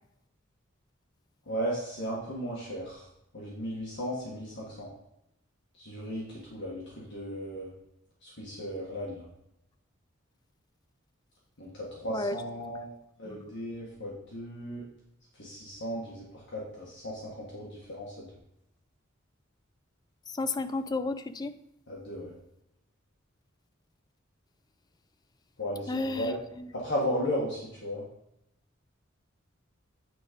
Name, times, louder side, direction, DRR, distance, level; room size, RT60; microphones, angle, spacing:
voice 1, 1.4-3.1 3.3-4.9 5.8-7.7 8.2-9.3 11.6-12.9 13.2-14.8 15.3-18.3 21.9-22.3 25.6-26.3 26.7-28.0, equal, 60° left, -5 dB, 1.6 m, -35 dB
voice 2, 20.3-21.5 25.9-26.7, left 3 dB, 20° left, 10 dB, 0.4 m, -32 dB
9.3 x 3.8 x 5.1 m, 0.82 s
head